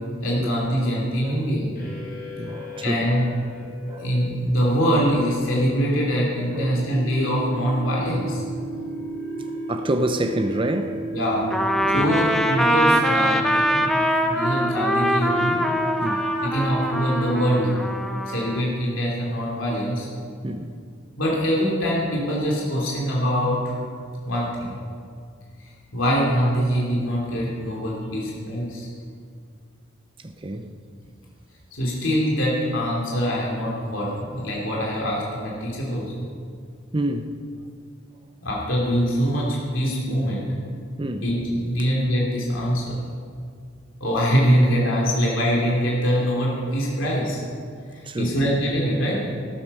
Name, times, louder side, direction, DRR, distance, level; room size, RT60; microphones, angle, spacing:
voice 1, 0.2-1.7 2.8-3.3 4.0-8.4 11.1-11.5 11.9-15.6 16.4-17.7 18.3-20.1 21.2-23.8 24.3-24.7 25.9-28.9 31.7-36.3 38.4-40.5 41.2-43.0 44.0-47.4 47.9-49.2, equal, 70° left, 3.3 m, -23 dB
sound 1, 1.7-17.7, right 1 dB, 50° left, 4.3 m, -33 dB
voice 2, 2.4-3.1 3.8-4.2 6.5-6.8 9.7-11.0 11.9-12.2 16.0-16.3 20.4-20.8 30.2-30.7 36.9-37.4 41.0-41.3 41.8-41.9 48.0-48.4, right 1 dB, 25° right, 0.6 m, -28 dB
Trumpet, 11.5-18.6, equal, ahead, 0.8 m, -23 dB
14.0 x 13.0 x 5.6 m
head